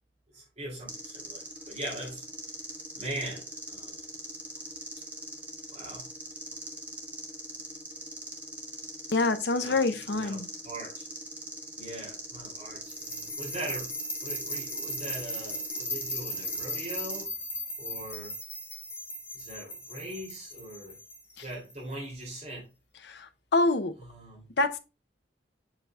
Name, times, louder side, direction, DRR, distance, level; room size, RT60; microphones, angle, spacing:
voice 1, 0.3-2.2 3.0-4.1 5.7-6.1 9.6-11.1 11.8-13.9 14.2-17.3 17.8-18.3 19.3-21.0 21.4-22.7 24.0-24.5, right 1 dB, 40° right, 2.8 m, -41 dB
sound 1, 0.9-17.2, right 1 dB, 10° right, 1.4 m, -42 dB
voice 2, 9.1-10.5 23.0-24.0 24.6-24.8, left 3 dB, 70° left, 0.6 m, -26 dB
sound 2, 12.9-21.9, left 1 dB, 15° left, 2.8 m, -37 dB
7.6 x 5.6 x 2.3 m
head